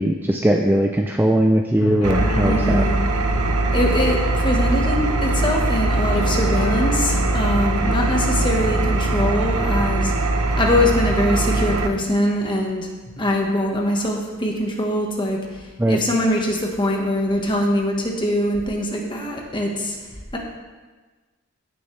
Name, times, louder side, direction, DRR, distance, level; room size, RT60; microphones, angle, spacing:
voice 1, 0.0-2.8 15.8-16.0, right 1 dB, 10° right, 2 dB, 0.4 m, -19 dB
sound 1, 1.8-12.3, left 4 dB, 75° left, 0.5 m, -33 dB
Engine, 2.0-11.9, right 2 dB, 85° right, 0.8 m, -21 dB
voice 2, 2.4-3.0 3.7-10.1 10.6-12.9 13.2-20.0 20.3-20.4, left 1 dB, 20° left, 0 dB, 1.3 m, -23 dB
16.0 x 6.9 x 3.3 m, 1.3 s
head